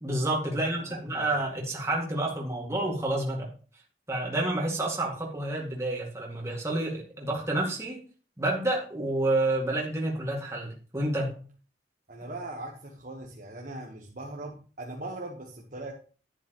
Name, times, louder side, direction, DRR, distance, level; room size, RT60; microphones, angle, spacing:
voice 1, 0.0-3.5 4.1-8.0 8.4-11.4, right 2 dB, 15° right, -2 dB, 2.3 m, -29 dB
voice 2, 0.5-1.3 12.1-15.9, right 2 dB, 50° right, -1 dB, 1.3 m, -40 dB
10.5 x 10.5 x 3.1 m, 0.40 s
head